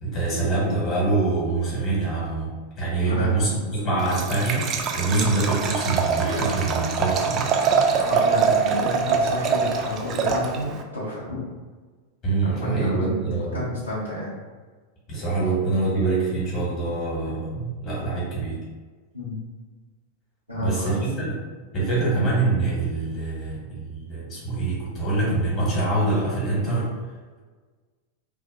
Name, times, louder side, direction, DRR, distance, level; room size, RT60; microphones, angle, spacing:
voice 1, 0.0-2.5 2.8-7.5 12.2-13.7 15.1-18.6 20.5-21.3 21.7-26.9, right 3 dB, 35° left, -7 dB, 1.2 m, -25 dB
voice 2, 3.0-3.5 5.1-5.3 7.8-11.4 12.4-14.4 19.1-19.3 20.5-21.0 22.0-22.1, left 2 dB, 90° left, -10 dB, 1.0 m, -30 dB
Liquid, 4.0-10.8, right 5 dB, 30° right, 0.3 m, -24 dB
2.6 x 2.3 x 2.5 m, 1.4 s
figure-of-eight pair, 90°, 0 cm